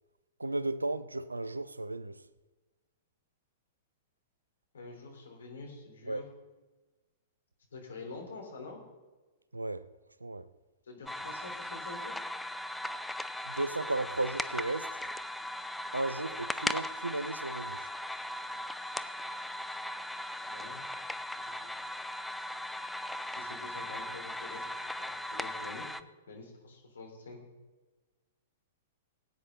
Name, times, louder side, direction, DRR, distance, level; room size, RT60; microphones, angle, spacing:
voice 1, 0.4-2.2 6.1-6.2 9.5-9.9 10.2-10.5 13.5-15.0 15.9-17.9, right 2 dB, 85° right, 0.5 m, -35 dB
voice 2, 4.7-6.2 7.7-8.8 10.8-12.2 20.5-20.9 21.4-21.7 23.3-24.6 25.0-25.9 26.3-27.4, left 3 dB, 70° left, 3.5 m, -47 dB
sound 1, 11.1-26.0, left 1 dB, 5° left, 0.5 m, -38 dB
18.0 x 9.2 x 3.8 m
figure-of-eight pair, 105°, 0 cm